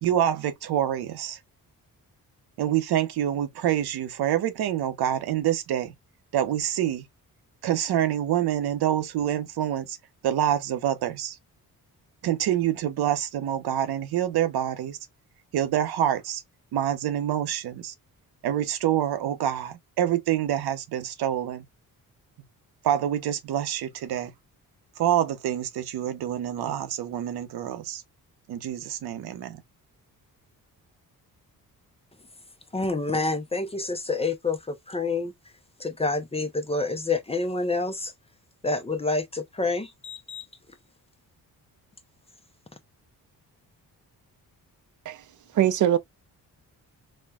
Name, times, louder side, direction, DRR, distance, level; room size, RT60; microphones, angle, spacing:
voice 1, 0.0-1.4 2.6-5.9 6.3-7.0 7.6-10.0 10.2-11.4 12.2-15.0 15.5-16.4 16.7-17.9 18.4-21.6 22.8-24.3 25.0-28.0 28.5-29.6, right 11 dB, 90° right, 0.8 m, -26 dB
voice 2, 32.7-35.3 35.8-38.1 38.6-40.4, left 3 dB, 15° left, 0.5 m, -28 dB
voice 3, 45.5-46.0, right 11 dB, 55° right, 0.5 m, -21 dB
4.2 x 2.2 x 2.3 m
cardioid pair, 100°, 37 cm